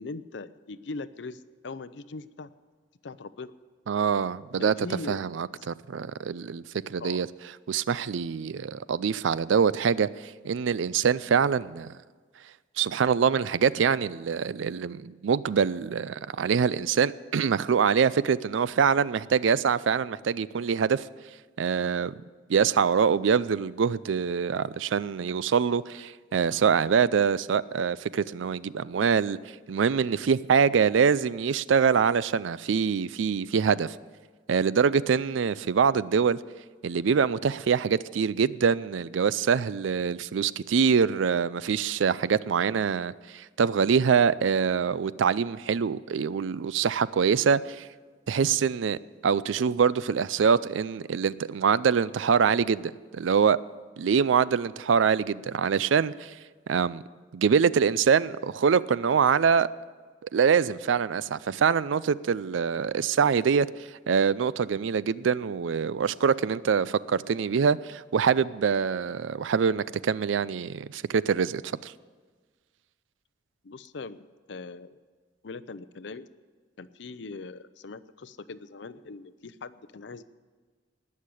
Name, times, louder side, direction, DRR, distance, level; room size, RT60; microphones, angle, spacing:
voice 1, 0.0-2.5 3.0-3.5 4.6-5.2 7.0-7.2 73.6-75.0 75.4-76.3 76.8-80.2, left 3 dB, 65° left, 0.6 m, -40 dB
voice 2, 3.9-4.7 5.1-7.3 7.7-11.9 12.8-21.1 21.6-22.1 22.5-29.4 29.7-34.0 34.5-36.4 36.8-47.9 48.3-49.0 49.2-53.6 54.0-56.3 56.7-57.0 57.3-59.7 60.3-71.9, right 6 dB, 80° right, 0.4 m, -24 dB
19.5 x 6.5 x 8.4 m
head